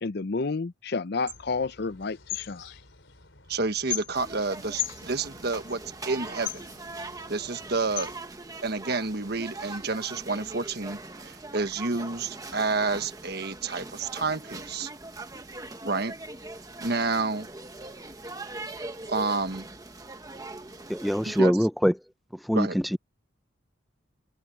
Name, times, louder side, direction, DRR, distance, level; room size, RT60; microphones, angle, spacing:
voice 1, 0.0-2.7, left 4 dB, 55° left, 0.6 m, -30 dB
sound 1, 1.3-8.2, left 9 dB, 70° left, 4.0 m, -39 dB
voice 2, 3.5-6.6 7.3-8.1 8.6-14.9 15.8-16.1 16.8-17.5 19.1-19.7 21.2-21.6 22.5-22.8, right 3 dB, 55° right, 1.4 m, -29 dB
sound 2, 4.1-21.4, right 2 dB, 20° right, 1.3 m, -41 dB
voice 3, 20.9-21.9 22.5-23.0, equal, ahead, 0.5 m, -23 dB
head